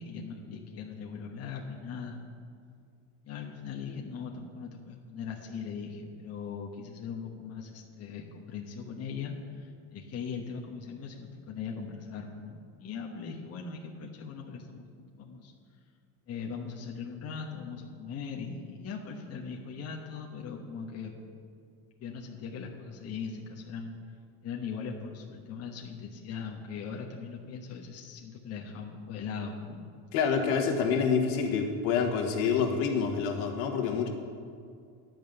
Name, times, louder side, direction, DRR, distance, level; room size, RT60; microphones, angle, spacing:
voice 1, 0.0-2.2 3.2-15.5 16.3-21.1 22.0-23.9 24.4-29.8, left 5 dB, 35° left, 0 dB, 1.2 m, -40 dB
voice 2, 30.1-34.1, left 6 dB, 70° left, 3 dB, 1.7 m, -27 dB
10.5 x 5.4 x 7.8 m, 2.3 s
supercardioid pair, 115°, 44 cm